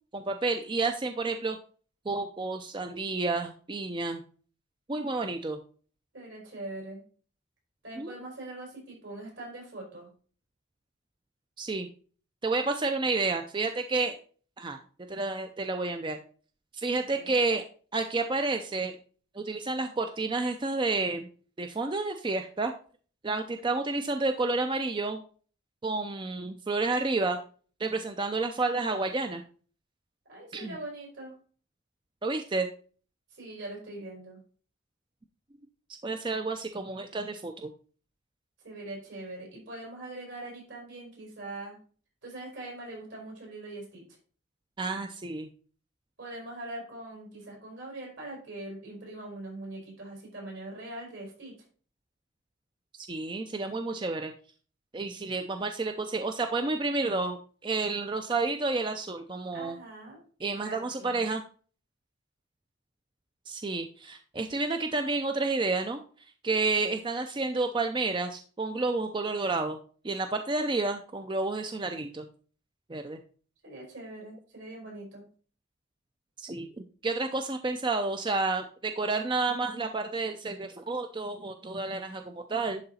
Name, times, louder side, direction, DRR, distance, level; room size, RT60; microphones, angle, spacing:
voice 1, 0.1-1.6 2.1-4.2 4.9-5.6 8.0-8.1 11.6-11.9 12.4-14.2 14.6-14.8 15.1-16.2 16.7-17.6 17.9-19.0 19.3-21.3 21.6-22.7 23.2-25.2 25.8-27.4 27.8-29.4 30.5-30.8 32.2-32.7 36.0-37.7 44.8-45.5 53.0-54.3 54.9-59.8 60.4-61.4 63.5-69.8 70.0-72.3 72.9-73.2 76.4-76.7 77.0-82.8, right 3 dB, 25° right, 6 dB, 0.4 m, -30 dB
voice 2, 6.1-7.0 7.8-10.1 17.1-17.4 30.3-31.3 33.3-34.4 38.6-41.8 42.2-44.0 46.2-51.6 59.5-60.2 60.6-61.3 73.6-75.2, right 2 dB, 75° right, -1 dB, 4.5 m, -42 dB
10.5 x 3.9 x 4.2 m, 0.41 s
head